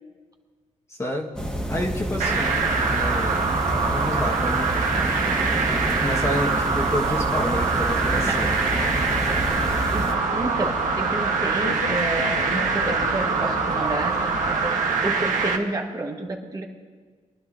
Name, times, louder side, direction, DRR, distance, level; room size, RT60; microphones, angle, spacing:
voice 1, 0.9-1.3 1.7-4.9 5.9-8.6, left 1 dB, 20° left, 0 dB, 1.4 m, -30 dB
sound 1, 1.4-10.1, right 1 dB, 5° left, 1.6 m, -28 dB
sound 2, 2.2-15.6, right 4 dB, 80° right, 1.2 m, -24 dB
sound 3, 8.7-14.7, left 7 dB, 60° left, 0.5 m, -36 dB
voice 2, 9.9-16.7, right 2 dB, 30° right, 1 dB, 1.4 m, -30 dB
23.0 x 10.5 x 2.6 m, 1.5 s
cardioid pair, 80°, 13 cm